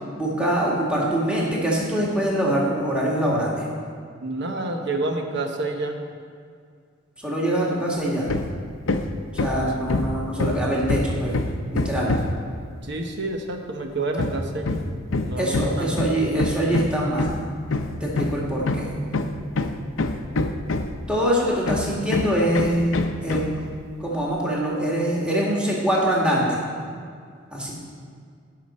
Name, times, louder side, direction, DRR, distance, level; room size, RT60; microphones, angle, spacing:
voice 1, 0.2-3.7 7.2-8.3 9.4-12.1 15.4-17.4 18.0-18.9 21.1-22.9 23.2-23.6 24.0-26.6 27.5-27.7, right 1 dB, 5° right, -5 dB, 1.8 m, -24 dB
voice 2, 4.2-6.0 12.8-14.8 15.2-16.0, right 2 dB, 60° right, 4 dB, 1.1 m, -28 dB
Hammer, 8.3-8.6 8.9-12.4 14.2-21.1 21.7-23.6, left 2 dB, 75° left, 0.6 m, -25 dB
17.0 x 6.0 x 4.3 m, 2.1 s
head